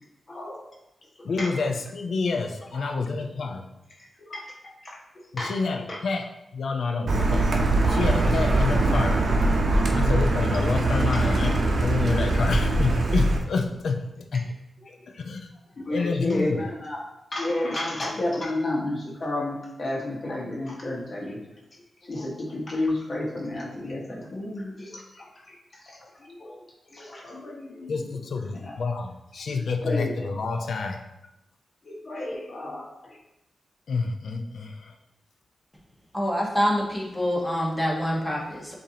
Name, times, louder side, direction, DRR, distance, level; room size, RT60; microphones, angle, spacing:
voice 1, 0.3-0.6 1.2-1.5 2.7-2.9 4.0-4.5 4.8-5.5 5.9-6.0 7.1-7.2 7.9-8.3 11.1-11.2 15.0-15.1 15.8-17.0 17.3-21.6 22.0-26.6 26.9-28.1 28.5-28.8 29.3-30.1 31.8-33.2, left 1 dB, 45° left, -2 dB, 1.1 m, -32 dB
voice 2, 1.2-3.7 5.3-7.5 7.9-9.2 9.9-14.5 14.9-15.5 15.9-16.7 27.9-31.0 33.9-34.9, left 4 dB, 75° left, 4 dB, 0.5 m, -28 dB
Car, 7.1-13.4, right 2 dB, 60° right, 0.6 m, -22 dB
voice 3, 36.1-38.7, equal, 5° left, -3 dB, 1.2 m, -26 dB
7.0 x 2.7 x 2.8 m, 0.91 s
cardioid pair, 70°, 0 cm